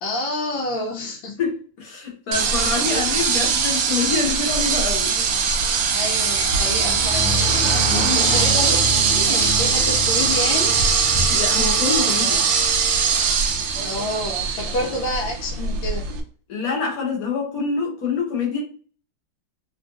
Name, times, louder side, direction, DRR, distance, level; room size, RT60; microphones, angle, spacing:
voice 1, 0.0-1.4 2.8-3.0 5.9-7.4 7.9-10.8 13.8-16.1, left 1 dB, 80° left, 1.3 m, -28 dB
voice 2, 1.4-5.1 7.7-8.4 11.3-12.4 14.8-14.9 16.5-18.6, left 4 dB, 55° left, 1.2 m, -26 dB
sound 1, 2.3-16.2, right 5 dB, 85° right, 1.4 m, -21 dB
sound 2, 6.1-12.7, left 1 dB, 60° right, 0.9 m, -29 dB
3.7 x 2.4 x 2.4 m
omnidirectional pair, 2.1 m